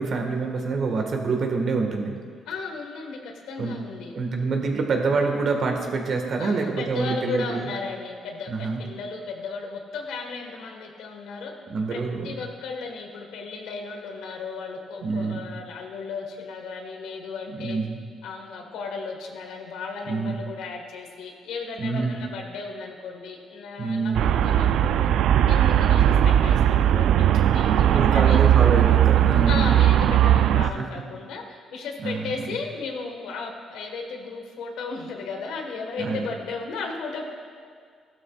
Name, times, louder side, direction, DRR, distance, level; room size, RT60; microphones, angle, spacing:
voice 1, 0.0-2.2 3.6-3.8 4.1-7.7 8.5-8.8 11.6-12.4 15.0-15.5 17.5-18.0 20.0-20.4 21.8-22.2 23.8-24.2 27.7-29.7 30.5-30.9 32.0-32.6 36.0-36.3, right 4 dB, 60° right, 3 dB, 1.6 m, -26 dB
voice 2, 2.4-4.1 6.4-11.5 11.9-17.8 18.2-25.1 25.5-28.4 29.5-37.2, left 4 dB, 90° left, 2 dB, 1.5 m, -35 dB
Traffic noise roadway noise, 24.1-30.7, right 11 dB, 80° right, 0.3 m, -18 dB
15.5 x 12.5 x 2.4 m, 2.1 s
cardioid pair, 90°, 0 cm